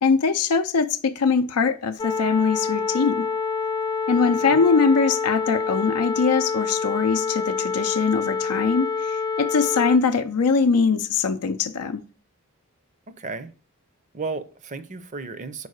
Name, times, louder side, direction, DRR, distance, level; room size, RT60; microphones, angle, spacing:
voice 1, 0.0-3.3 4.1-12.0, left 5 dB, 85° left, 0.5 m, -22 dB
sound 1, 2.0-10.0, left 5 dB, 20° left, 0.3 m, -27 dB
voice 2, 13.1-13.5 14.1-15.7, right 3 dB, 35° right, 0.6 m, -34 dB
5.5 x 4.6 x 6.4 m
head